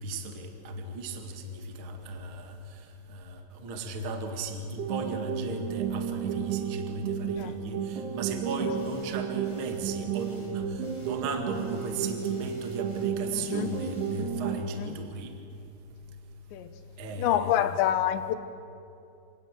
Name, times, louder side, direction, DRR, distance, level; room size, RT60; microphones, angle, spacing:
voice 1, 0.0-2.5 3.1-15.3 17.0-17.6, right 2 dB, 50° right, 5 dB, 1.5 m, -36 dB
sound 1, 4.8-14.8, right 8 dB, 70° right, 3.1 m, -33 dB
sound 2, 8.7-9.2 9.4-9.8 10.1-10.5 10.8-11.2 11.5-14.2, left 2 dB, 20° left, 6.5 m, -54 dB
voice 2, 13.3-13.7 14.8-15.0 16.5-16.7 17.2-18.4, left 11 dB, 75° left, 10 dB, 3.0 m, -27 dB
27.0 x 18.0 x 7.5 m, 2.6 s
omnidirectional pair, 5.4 m